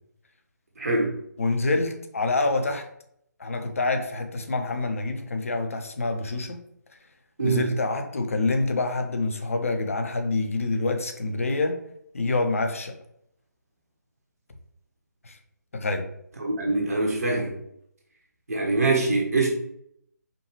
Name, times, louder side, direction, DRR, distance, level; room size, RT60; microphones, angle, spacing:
voice 1, 0.8-1.2 7.4-7.7 16.4-17.6 18.5-19.5, right 3 dB, 55° right, -1 dB, 1.0 m, -24 dB
voice 2, 1.4-2.8 3.4-6.6 7.4-11.8 12.1-12.9 15.2-15.4 15.7-16.1, left 3 dB, 50° left, 5 dB, 0.6 m, -26 dB
5.1 x 2.3 x 3.1 m, 0.72 s
figure-of-eight pair, 150°, 10 cm